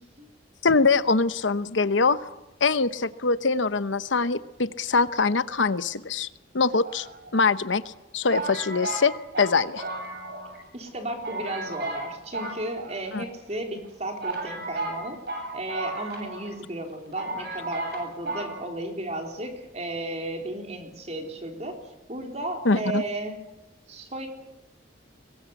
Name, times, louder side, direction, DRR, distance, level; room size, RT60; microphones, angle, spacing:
voice 1, 0.6-2.2 2.6-6.3 6.5-7.1 7.3-7.8 8.1-9.8 13.1-13.2 22.6-23.0, left 4 dB, 90° left, 13 dB, 1.0 m, -23 dB
sound 1, 6.8-7.6 8.3-10.6 10.9-11.0 11.2-12.1 12.3-13.3 13.8-13.9 14.2-16.5 16.8-16.9 17.2-18.0 18.3-18.5, right 2 dB, 60° right, 7.9 m, -34 dB
voice 2, 10.7-15.2 15.5-21.7 22.1-23.3 23.9-24.3, right 1 dB, 35° right, 3 dB, 3.9 m, -34 dB
22.5 x 20.0 x 8.3 m, 0.96 s
head